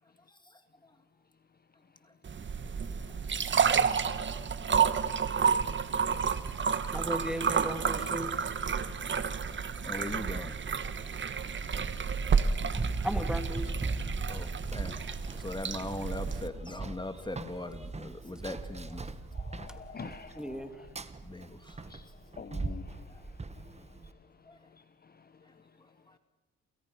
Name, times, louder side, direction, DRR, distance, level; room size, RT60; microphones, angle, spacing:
sound 1, 2.3-16.5, right 6 dB, 40° right, 1.5 m, -30 dB
voice 1, 6.9-8.5 13.0-13.8 20.4-20.8, equal, 5° right, 7 dB, 2.8 m, -36 dB
voice 2, 9.8-10.5 14.3-14.5 14.7-15.0 15.4-19.1 21.3-21.5, left 2 dB, 15° left, 9 dB, 1.9 m, -39 dB
Run, 12.7-24.1, right 3 dB, 20° right, 1.5 m, -39 dB
voice 3, 19.3-20.9 21.8-22.1 22.3-23.7 24.7-25.3, left 5 dB, 30° left, 11 dB, 1.1 m, -47 dB
30.0 x 28.0 x 5.8 m, 1.2 s
cardioid pair, 90°, 30 cm